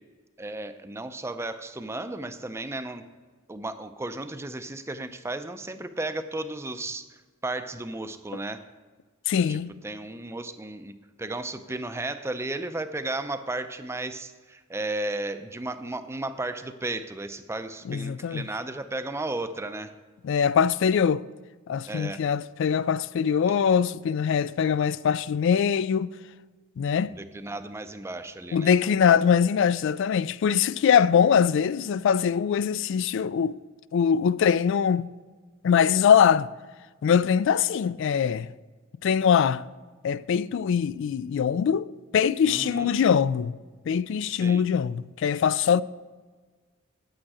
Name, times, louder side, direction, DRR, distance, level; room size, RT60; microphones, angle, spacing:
voice 1, 0.4-3.0 3.5-7.0 7.4-8.6 9.5-9.6 9.8-10.9 11.2-19.9 21.9-22.2 27.0-28.7 42.5-42.9 44.3-44.6, right 2 dB, 15° right, 0.5 m, -34 dB
voice 2, 9.3-9.7 17.9-18.4 20.2-21.2 21.7-26.1 26.8-27.1 28.5-33.6 33.9-35.1 35.6-36.5 37.0-38.5 39.0-39.6 40.0-41.9 42.1-43.5 43.9-45.8, left 7 dB, 60° left, 0.3 m, -22 dB
8.8 x 8.7 x 4.8 m
head